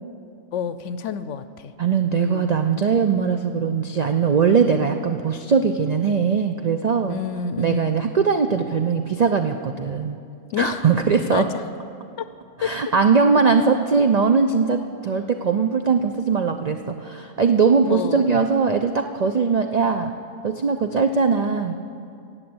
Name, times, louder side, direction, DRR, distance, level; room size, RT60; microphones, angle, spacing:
voice 1, 0.5-1.7 2.1-2.5 7.1-7.9 10.5-10.8 11.3-11.4 12.6-12.7 17.9-18.2, left 7 dB, 65° left, 13 dB, 0.9 m, -28 dB
voice 2, 1.8-7.2 7.6-10.2 10.6-11.5 12.6-20.1 20.4-21.8, right 5 dB, 85° right, 6 dB, 0.3 m, -20 dB
17.0 x 7.7 x 7.8 m, 2.4 s
omnidirectional pair, 1.4 m